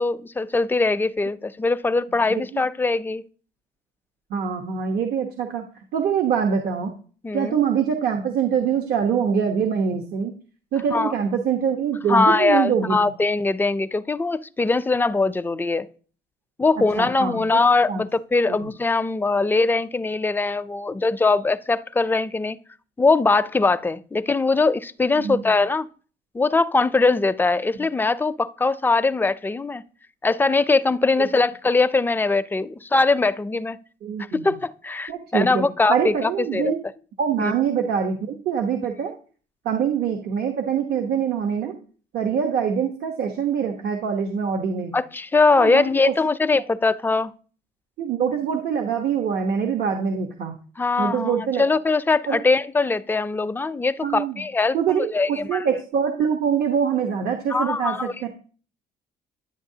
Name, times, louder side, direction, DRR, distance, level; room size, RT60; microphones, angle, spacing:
voice 1, 0.0-3.2 7.2-7.6 10.9-11.1 12.1-15.9 16.6-22.6 23.0-25.9 26.3-29.8 30.2-33.8 34.3-36.7 37.4-37.5 44.9-47.3 50.8-54.8 55.1-55.6 57.5-58.3, left 3 dB, 10° left, 0.4 m, -21 dB
voice 2, 2.3-2.6 4.3-5.7 5.9-6.9 7.3-10.3 10.7-13.0 17.0-17.4 17.9-18.0 18.5-18.6 25.2-25.4 31.2-31.3 34.0-34.5 35.1-36.8 37.2-39.1 39.6-41.8 42.1-44.9 45.6-46.1 48.0-50.6 51.0-51.6 52.3-52.4 54.0-54.4 54.7-58.3, right 7 dB, 65° right, 1.1 m, -24 dB
10.5 x 8.6 x 2.8 m
cardioid pair, 110°, 17 cm